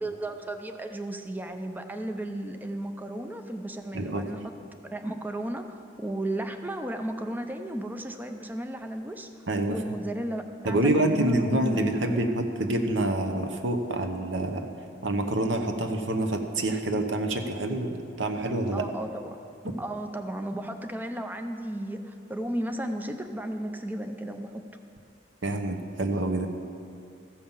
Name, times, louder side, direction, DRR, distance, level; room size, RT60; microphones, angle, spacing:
voice 1, 0.0-4.5 4.8-5.7 6.0-9.3 9.7-12.2 18.7-19.4 19.8-24.5, right 1 dB, 10° right, 6 dB, 0.5 m, -34 dB
voice 2, 3.9-4.2 9.5-9.8 10.6-14.7 15.0-18.8 25.4-26.5, right 1 dB, 85° right, 6 dB, 1.0 m, -27 dB
14.5 x 5.6 x 7.2 m, 2.5 s
head